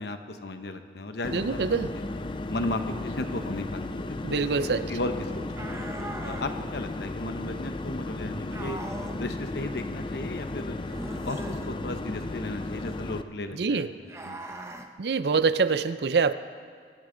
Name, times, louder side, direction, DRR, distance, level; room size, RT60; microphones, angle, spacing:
voice 1, 0.0-1.8 2.5-3.8 4.2-5.7 6.2-8.8 9.2-10.8 11.2-13.9 14.2-14.4, left 2 dB, 65° left, 7 dB, 0.9 m, -35 dB
sound 1, 1.2-13.2, left 2 dB, 25° left, 0.4 m, -35 dB
voice 2, 1.3-1.9 4.2-4.9 13.5-13.9 15.0-16.3, right 5 dB, 65° right, 13 dB, 0.5 m, -25 dB
sound 2, 5.5-6.5 8.5-9.2 10.9-11.7 14.1-14.9, right 1 dB, 15° right, 0.7 m, -39 dB
23.0 x 12.0 x 3.9 m, 2.1 s
head